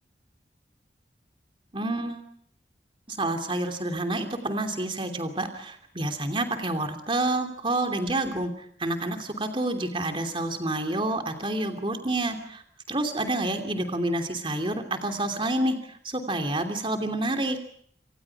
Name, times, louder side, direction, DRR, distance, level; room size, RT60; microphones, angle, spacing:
voice 1, 1.7-2.3 3.1-12.6 12.9-17.6, right 2 dB, 30° right, 5 dB, 2.9 m, -28 dB
28.0 x 27.0 x 4.8 m, 0.64 s
head